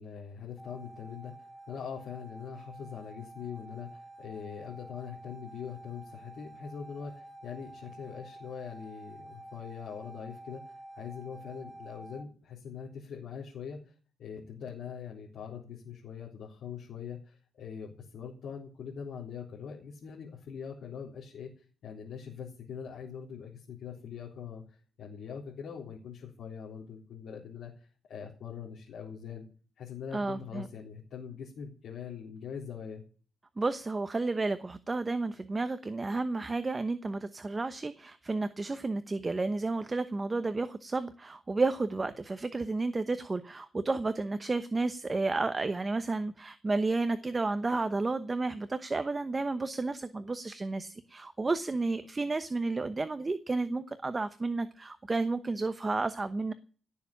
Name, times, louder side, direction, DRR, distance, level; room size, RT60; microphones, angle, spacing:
voice 1, 0.0-13.9 14.2-29.5 29.8-33.0, left 7 dB, 80° left, -4 dB, 3.8 m, -43 dB
sound 1, 0.6-12.2, right 1 dB, 10° left, 1.7 m, -49 dB
voice 2, 30.1-30.7 33.6-56.5, right 3 dB, 25° right, 11 dB, 1.0 m, -32 dB
18.0 x 7.1 x 8.7 m, 0.40 s
cardioid pair, 105°, 0 cm